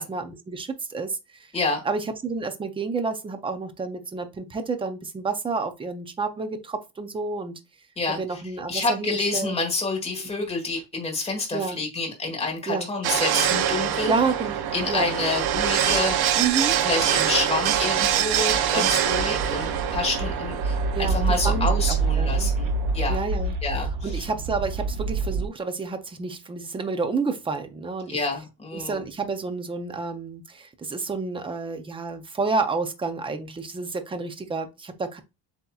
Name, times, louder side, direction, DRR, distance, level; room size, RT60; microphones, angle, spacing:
voice 1, 0.1-1.5 1.8-7.6 8.1-9.6 10.1-10.5 11.5-11.8 12.7-12.9 14.1-14.6 14.9-15.1 16.4-16.8 20.9-22.5 23.1-28.2 28.7-35.2, right 4 dB, 15° right, 0.4 m, -30 dB
voice 2, 8.0-8.4 8.7-14.1 14.7-16.2 16.8-23.2 23.6-24.2 28.1-29.0, left 3 dB, 15° left, 1.4 m, -28 dB
sound 1, 13.0-23.1, right 10 dB, 60° right, 0.7 m, -25 dB
sound 2, 15.4-25.5, right 4 dB, 85° right, 1.2 m, -28 dB
7.6 x 2.8 x 2.3 m
cardioid pair, 170°, 44 cm